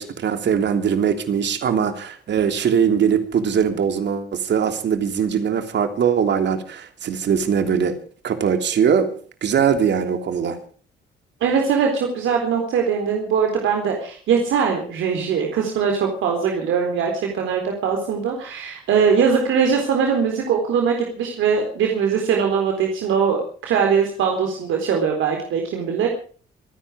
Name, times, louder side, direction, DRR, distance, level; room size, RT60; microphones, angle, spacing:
voice 1, 0.0-8.0 8.2-10.6, right 7 dB, 65° right, 8 dB, 3.1 m, -21 dB
voice 2, 11.4-26.1, right 6 dB, 80° right, 2 dB, 4.0 m, -21 dB
25.5 x 10.5 x 5.0 m, 0.43 s
cardioid pair, 90°, 20 cm